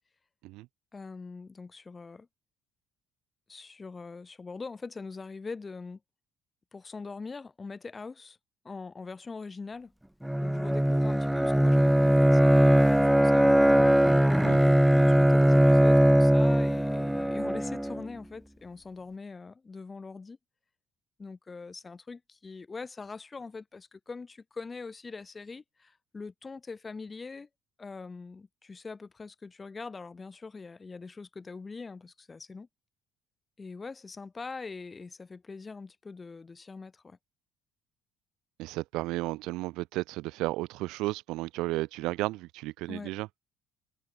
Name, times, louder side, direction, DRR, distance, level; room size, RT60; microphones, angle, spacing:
voice 1, 0.9-2.3 3.5-6.0 6.7-8.4 8.6-9.9 10.4-13.6 14.6-20.4 21.2-27.5 27.8-32.7 33.6-37.2 42.9-43.1, left 4 dB, 20° left, 8.0 m, -42 dB
Bowed string instrument, 10.2-18.1, equal, ahead, 0.9 m, -21 dB
voice 2, 38.6-43.3, right 19 dB, 80° right, 1.4 m, -33 dB
cardioid pair, 140°, 0 cm